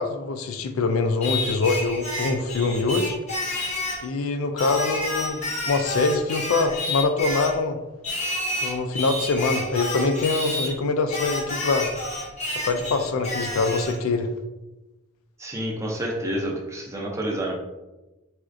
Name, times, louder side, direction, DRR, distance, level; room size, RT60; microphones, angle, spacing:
voice 1, 0.0-3.2 4.0-7.8 8.6-11.9 12.6-14.3, left 3 dB, 80° left, 7 dB, 0.4 m, -24 dB
Singing, 1.2-4.1 4.6-7.6 8.0-10.7 11.1-14.0, left 1 dB, 30° left, 0.6 m, -30 dB
voice 2, 15.4-17.5, right 1 dB, 15° right, -2 dB, 0.5 m, -29 dB
4.2 x 2.4 x 2.5 m, 1.1 s
head